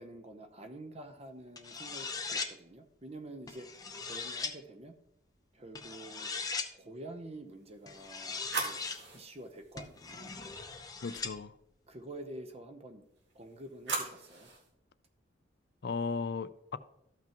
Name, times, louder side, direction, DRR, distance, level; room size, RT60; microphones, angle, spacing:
voice 1, 0.0-4.9 5.5-6.3 6.8-10.3 11.9-13.0 13.3-14.5, right 1 dB, 30° right, 0.8 m, -48 dB
sound 1, 1.6-2.5 3.5-4.5 5.8-6.7 7.9-9.0 9.8-11.3, left 4 dB, 20° left, 0.7 m, -39 dB
sound 2, 7.7-10.8 13.2-14.7, right 4 dB, 60° right, 2.0 m, -41 dB
voice 2, 11.0-11.5 15.8-16.8, left 4 dB, 55° left, 0.4 m, -36 dB
14.0 x 6.0 x 3.0 m
head